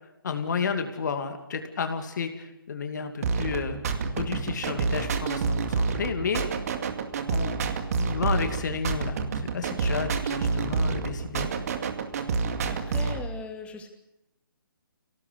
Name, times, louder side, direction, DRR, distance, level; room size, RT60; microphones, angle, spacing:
voice 1, 0.2-6.4 7.3-7.6 8.0-11.5, left 5 dB, 55° left, 6 dB, 2.7 m, -32 dB
sound 1, 3.2-13.2, right 4 dB, 45° right, 2.3 m, -28 dB
voice 2, 12.2-13.9, left 4 dB, 10° left, 4 dB, 2.7 m, -40 dB
25.5 x 17.5 x 8.3 m, 0.90 s
figure-of-eight pair, 145°, 12 cm